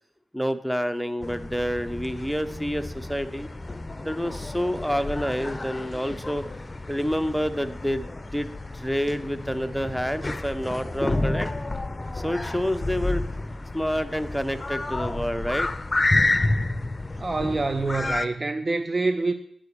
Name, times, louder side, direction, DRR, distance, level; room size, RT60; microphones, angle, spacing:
voice 1, 0.3-3.5 4.0-6.4 6.9-11.5 12.2-13.2 13.7-15.7, equal, ahead, 11 dB, 0.9 m, -28 dB
sound 1, 1.2-18.3, left 2 dB, 30° left, 0.6 m, -30 dB
voice 2, 17.2-19.3, right 3 dB, 40° right, 10 dB, 0.6 m, -26 dB
9.6 x 5.2 x 6.9 m, 0.67 s
supercardioid pair, 40°, 0 cm